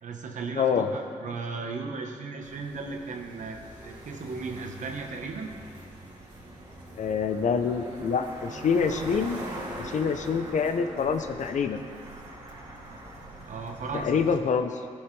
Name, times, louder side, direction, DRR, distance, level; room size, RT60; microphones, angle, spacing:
voice 1, 0.0-3.6 3.8-5.5 13.5-14.3, right 4 dB, 70° right, 3 dB, 1.1 m, -36 dB
voice 2, 0.5-0.9 7.0-9.4 9.8-11.8 14.0-14.7, left 6 dB, 70° left, 8 dB, 0.6 m, -26 dB
sound 1, 2.4-14.4, right 1 dB, 35° right, 2.5 m, -42 dB
15.0 x 6.3 x 3.2 m, 2.2 s
cardioid pair, 80°, 13 cm